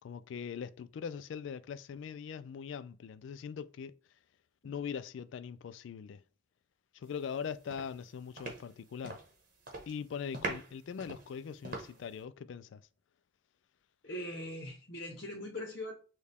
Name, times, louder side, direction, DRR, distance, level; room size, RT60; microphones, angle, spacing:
voice 1, 0.0-3.9 4.6-6.2 6.9-9.2 9.9-12.8, left 7 dB, 70° left, 0.3 m, -41 dB
sound 1, 7.2-7.4 7.7-9.4 9.6-10.0 10.3-12.2, right 2 dB, 45° right, 1.2 m, -42 dB
voice 2, 14.0-15.9, left 1 dB, 50° left, 0.9 m, -41 dB
6.4 x 2.3 x 3.5 m
head